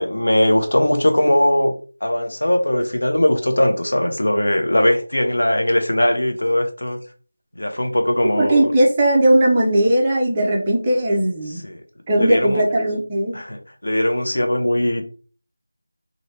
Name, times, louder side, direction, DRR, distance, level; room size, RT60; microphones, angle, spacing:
voice 1, 0.0-1.7 2.0-7.0 7.6-8.7 11.6-11.8 12.2-12.6 13.3-15.0, left 1 dB, 85° left, 5 dB, 0.8 m, -19 dB
voice 2, 8.4-11.6 12.1-13.4, right 1 dB, 15° right, -3 dB, 0.5 m, -18 dB
2.8 x 2.6 x 3.2 m, 0.39 s
figure-of-eight pair, 175°, 0 cm